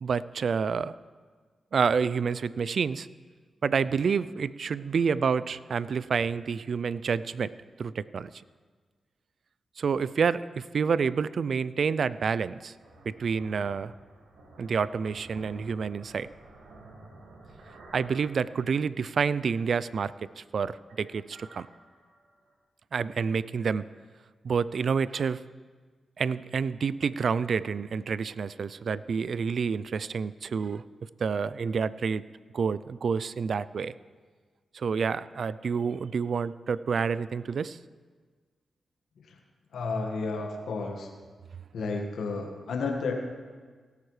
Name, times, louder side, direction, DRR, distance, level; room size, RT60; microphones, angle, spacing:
voice 1, 0.0-0.9 1.7-3.1 3.6-7.5 7.8-8.3 9.8-12.7 13.1-13.9 14.6-16.3 17.9-21.7 22.9-23.9 24.4-25.4 26.2-30.8 31.2-32.2 32.5-33.9 34.7-37.8, right 6 dB, 65° right, 17 dB, 0.4 m, -28 dB
sound 1, 12.8-19.3 19.7-20.5 20.8-22.5, right 2 dB, 90° right, 2.1 m, -52 dB
voice 2, 39.7-41.1 41.7-43.2, left 3 dB, 80° left, 3 dB, 1.6 m, -32 dB
17.5 x 12.0 x 3.3 m, 1.5 s
supercardioid pair, 50°, 0 cm